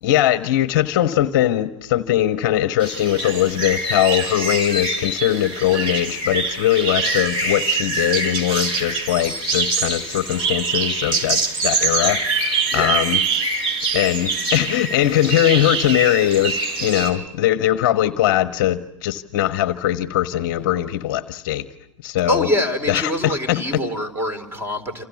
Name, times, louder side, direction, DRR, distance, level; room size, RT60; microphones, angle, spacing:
voice 1, 0.0-13.2 13.9-21.7 22.0-23.8, left 13 dB, 40° left, 11 dB, 1.3 m, -21 dB
sound 1, 2.8-17.1, right 3 dB, 30° right, 6.2 m, -24 dB
voice 2, 22.3-25.0, equal, 15° right, 11 dB, 4.2 m, -24 dB
29.0 x 28.0 x 7.2 m, 0.79 s
figure-of-eight pair, 110°, 17 cm